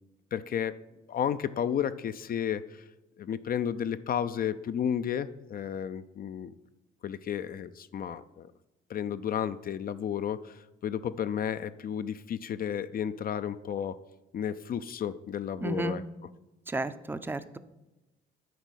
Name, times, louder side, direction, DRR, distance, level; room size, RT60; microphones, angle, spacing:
voice 1, 0.3-0.7 1.1-2.8 3.2-6.5 7.0-8.5 8.9-14.0 14.3-16.0, left 9 dB, 50° left, 13 dB, 0.4 m, -32 dB
voice 2, 15.6-16.0 16.7-17.6, right 2 dB, 10° right, 12 dB, 0.5 m, -33 dB
9.2 x 4.1 x 6.3 m, 1.0 s
cardioid pair, 90°, 20 cm